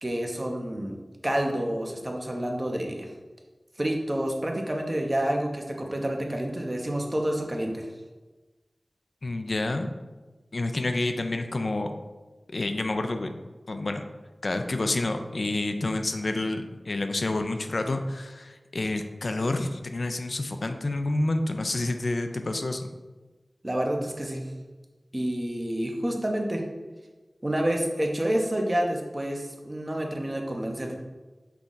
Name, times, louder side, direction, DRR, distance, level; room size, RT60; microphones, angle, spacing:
voice 1, 0.0-1.0 1.2-3.1 3.8-7.9 23.6-24.5 25.1-26.6 27.4-31.0, right 1 dB, 30° right, 2 dB, 0.8 m, -28 dB
voice 2, 9.2-9.9 10.5-11.9 12.5-13.3 13.7-14.0 14.4-22.9, left 2 dB, 70° left, 6 dB, 0.3 m, -28 dB
5.7 x 2.4 x 3.9 m, 1.2 s
cardioid pair, 40°, 0 cm